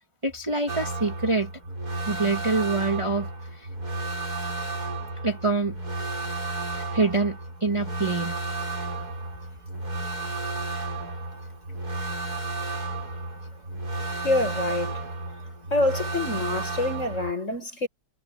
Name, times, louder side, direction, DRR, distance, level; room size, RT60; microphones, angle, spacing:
voice 1, 0.2-1.5 2.1-3.7 5.2-5.7 6.4-8.4, right 3 dB, 15° right, 2.6 m, -26 dB
sound 1, 0.7-17.3, right 2 dB, 45° right, 8.4 m, -33 dB
voice 2, 14.2-15.1 15.7-17.9, left 2 dB, 35° left, 6.8 m, -26 dB
omnidirectional pair, 2.3 m